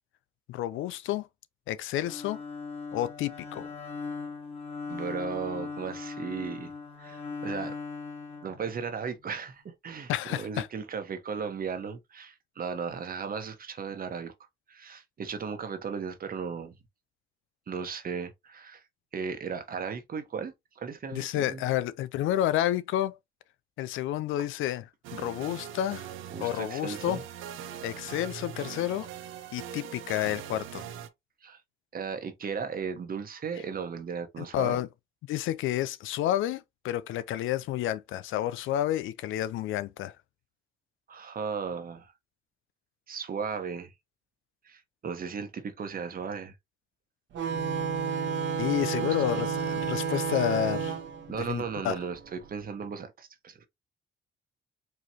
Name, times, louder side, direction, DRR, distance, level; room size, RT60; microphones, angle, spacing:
voice 1, 0.5-1.3 1.7-2.4 2.9-3.7 10.1-10.7 21.1-23.2 23.8-24.8 25.1-26.1 26.4-27.2 27.8-29.1 29.5-30.8 34.4-34.9 35.3-40.1 48.6-50.9 51.3-51.9, left 12 dB, 85° left, 0.5 m, -30 dB
Bowed string instrument, 2.0-9.2, left 4 dB, 30° left, 1.8 m, -39 dB
voice 2, 4.9-6.7 7.0-7.8 8.4-14.3 14.7-16.8 17.7-18.8 19.1-21.7 26.3-27.2 31.4-31.6 31.9-34.8 41.1-42.1 43.1-43.9 44.6-46.5 49.0-49.1 51.3-53.7, right 6 dB, 45° right, 1.2 m, -36 dB
sound 1, 25.0-31.1, right 9 dB, 90° right, 0.6 m, -41 dB
sound 2, 47.3-52.5, right 6 dB, 70° right, 1.2 m, -31 dB
4.6 x 3.1 x 2.8 m
cardioid pair, 90°, 20 cm